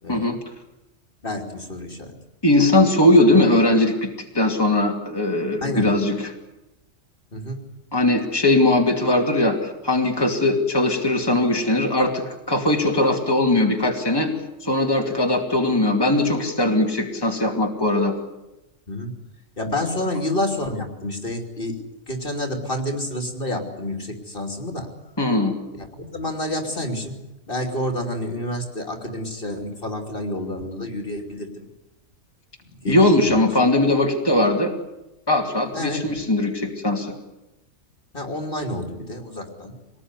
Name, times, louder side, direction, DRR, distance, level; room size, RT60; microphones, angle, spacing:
voice 1, 0.0-0.4 1.2-2.1 5.6-5.9 7.3-7.6 18.9-19.1 19.6-24.9 25.7-27.2 27.5-31.7 32.6-33.5 35.7-36.1 38.1-39.7, left 1 dB, 45° left, 4 dB, 3.2 m, -29 dB
voice 2, 2.4-4.1 4.3-6.3 7.9-14.3 14.6-18.1 25.2-25.5 32.9-34.7 35.3-37.1, left 1 dB, 20° left, 1 dB, 2.7 m, -20 dB
25.0 x 19.5 x 9.8 m, 0.96 s
omnidirectional pair, 1.3 m